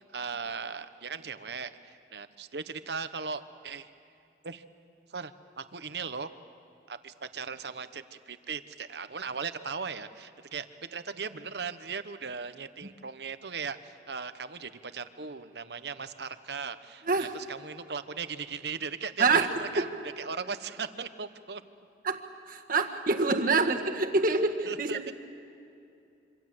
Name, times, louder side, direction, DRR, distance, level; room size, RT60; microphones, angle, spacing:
voice 1, 0.0-3.9 4.4-4.6 5.1-6.3 6.9-19.9 20.2-21.6 24.7-25.1, right 5 dB, 70° right, 11 dB, 1.0 m, -38 dB
voice 2, 22.0-25.1, right 3 dB, 50° right, 4 dB, 1.8 m, -26 dB
26.5 x 25.5 x 7.8 m, 2.6 s
head